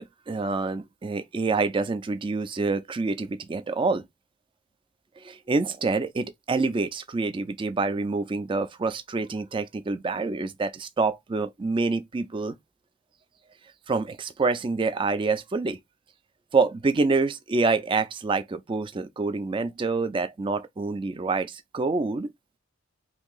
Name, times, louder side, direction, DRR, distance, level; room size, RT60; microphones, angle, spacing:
voice 1, 0.0-4.0 5.2-12.6 13.9-15.8 16.5-22.3, right 3 dB, 25° right, 0.3 m, -27 dB
2.8 x 2.6 x 3.8 m
head